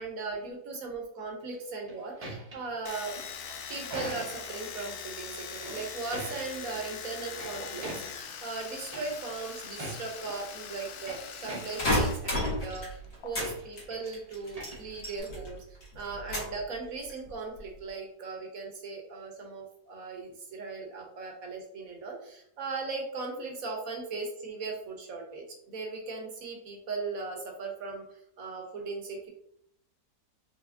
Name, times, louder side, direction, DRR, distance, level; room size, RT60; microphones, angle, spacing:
voice 1, 0.0-3.1 3.7-12.9 13.2-15.6 15.9-28.0 28.4-29.3, right 4 dB, 65° right, 1 dB, 1.2 m, -38 dB
sound 1, 1.6-4.6 5.5-6.8 7.1-8.3 8.9-9.3 9.6-10.3 10.8-12.2 12.4-12.8 13.4-14.1 14.4-15.2, right 1 dB, 35° right, 0.7 m, -43 dB
Domestic sounds home sounds, 2.9-12.2 12.4-13.3, left 7 dB, 75° left, 1.1 m, -42 dB
sound 2, 11.8-13.5 13.8-15.5 15.8-16.6 17.1-17.6, left 1 dB, 40° left, 1.6 m, -31 dB
4.9 x 3.2 x 2.6 m, 0.73 s
omnidirectional pair, 1.7 m